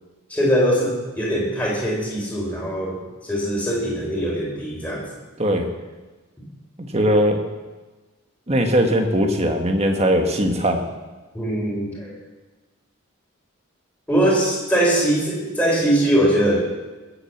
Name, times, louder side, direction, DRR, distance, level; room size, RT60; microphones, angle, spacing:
voice 1, 0.3-5.1 11.3-12.1 14.1-16.6, right 1 dB, 5° left, -3 dB, 3.9 m, -21 dB
voice 2, 6.9-7.4 8.5-10.8, equal, 30° right, 4 dB, 1.6 m, -19 dB
21.0 x 7.8 x 7.3 m, 1.2 s
head